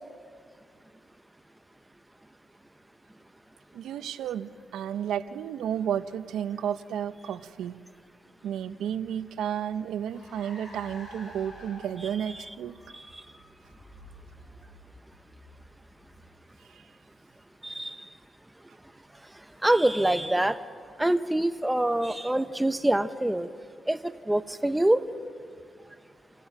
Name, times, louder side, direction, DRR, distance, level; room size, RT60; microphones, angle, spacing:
voice 1, 3.7-7.7 8.4-12.8 16.7-16.8, right 9 dB, 85° right, 12 dB, 0.7 m, -32 dB
Car, 8.9-16.7, left 1 dB, 45° left, 7.7 m, -50 dB
voice 2, 17.6-18.0 19.6-20.6 21.0-23.5 23.9-25.0, right 1 dB, 10° right, 11 dB, 0.7 m, -25 dB
28.0 x 15.5 x 5.9 m, 2.1 s
cardioid pair, 100°, 0 cm